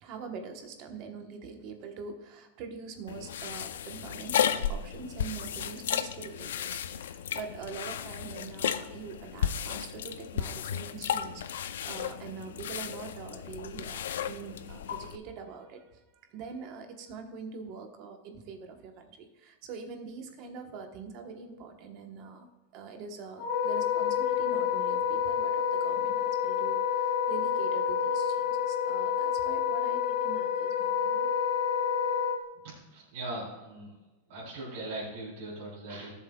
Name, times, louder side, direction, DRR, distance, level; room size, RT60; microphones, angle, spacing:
voice 1, 0.0-16.0 16.3-22.5 22.7-31.3, right 5 dB, 30° right, 5 dB, 1.1 m, -44 dB
sound 1, 3.1-15.2, left 9 dB, 90° left, 0.5 m, -34 dB
Wind instrument woodwind instrument, 23.4-32.4, left 8 dB, 45° left, 1.6 m, -28 dB
voice 2, 32.6-33.9 34.3-36.1, right 2 dB, 50° right, -7 dB, 3.5 m, -40 dB
16.5 x 7.3 x 2.3 m, 1.1 s
supercardioid pair, 180°, 0 cm